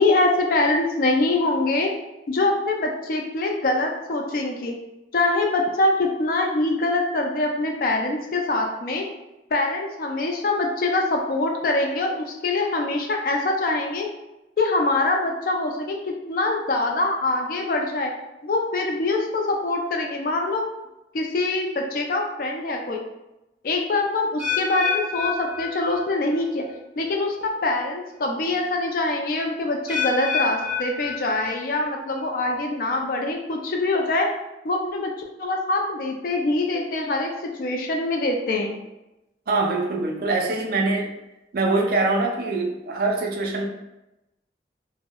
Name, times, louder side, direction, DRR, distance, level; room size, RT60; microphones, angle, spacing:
voice 1, 0.0-1.9 2.3-4.7 5.1-9.0 9.5-14.1 14.6-18.1 18.4-20.6 21.1-23.0 23.6-26.6 27.0-34.3 34.6-35.1 35.4-38.8, left 2 dB, 55° left, 2 dB, 0.4 m, -24 dB
sound 1, 24.4-26.4 26.7-27.1 27.8-27.9 29.9-31.8 32.2-32.6 33.2-33.3, left 6 dB, 5° right, 0.7 m, -29 dB
voice 2, 39.5-41.1 41.5-43.7, right 3 dB, 55° right, 1 dB, 0.4 m, -23 dB
2.7 x 2.0 x 2.2 m, 0.94 s
head